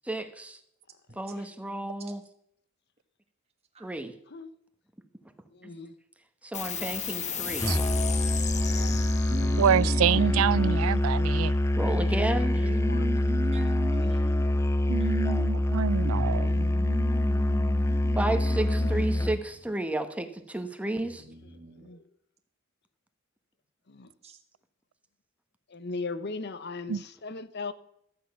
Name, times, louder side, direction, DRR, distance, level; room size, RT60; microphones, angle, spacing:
voice 1, 0.1-0.6 1.2-2.2 3.8-4.1 6.4-7.7 11.7-12.7 18.2-21.2, right 1 dB, 5° right, 1.1 m, -32 dB
voice 2, 5.5-6.0 8.5-9.1 9.8-10.9 12.1-12.2 12.8-13.1 13.9-14.1 15.2-15.4 16.3-16.6 18.8-19.1 21.8-22.0 23.9-24.1 25.7-27.7, left 3 dB, 55° left, 0.9 m, -39 dB
sound 1, 6.5-13.4, left 7 dB, 35° left, 1.1 m, -37 dB
Musical instrument, 7.6-19.5, left 1 dB, 15° left, 0.5 m, -25 dB
voice 3, 8.9-10.8 12.5-14.5 16.1-19.4 21.0-21.9 24.2-24.4, equal, 30° right, 1.2 m, -38 dB
voice 4, 9.6-11.5 14.9-16.7 26.9-27.0, right 8 dB, 90° right, 0.3 m, -26 dB
12.5 x 8.5 x 5.7 m
head